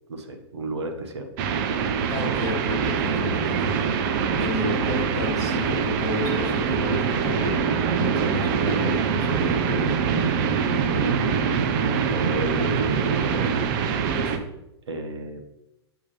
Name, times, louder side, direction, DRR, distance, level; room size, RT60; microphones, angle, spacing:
voice 1, 0.1-1.3 4.6-5.0 11.2-11.3 12.1-13.7 14.9-15.4, right 2 dB, 75° right, 5 dB, 1.1 m, -32 dB
sound 1, 1.4-14.4, right 6 dB, 45° right, 0.7 m, -24 dB
voice 2, 2.1-3.8 4.4-7.7 8.0-10.1 14.1-14.5, left 2 dB, 25° left, -1 dB, 2.2 m, -31 dB
8.6 x 3.5 x 3.2 m, 0.88 s
hypercardioid pair, 110°, 14 cm